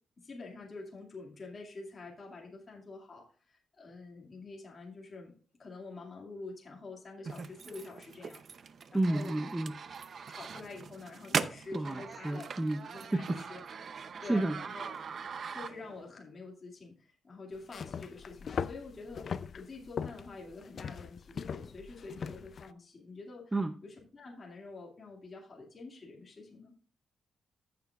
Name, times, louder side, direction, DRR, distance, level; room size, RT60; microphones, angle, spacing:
voice 1, 0.2-5.3 5.6-8.4 8.9-9.4 10.3-12.5 12.9-13.6 14.0-14.9 15.5-19.3 19.5-23.5 23.8-26.7, left 3 dB, 35° left, -1 dB, 2.3 m, -47 dB
sound 1, 7.2-16.1, right 6 dB, 50° right, 0.6 m, -40 dB
voice 2, 8.9-9.7 11.7-12.8 13.1-13.2 14.3-14.6 23.5-23.7, right 2 dB, 15° right, 8 dB, 0.6 m, -30 dB
sound 2, 17.6-22.7, left 6 dB, 50° left, 0.4 m, -40 dB
14.5 x 6.9 x 2.4 m, 0.41 s
cardioid pair, 125°, 0 cm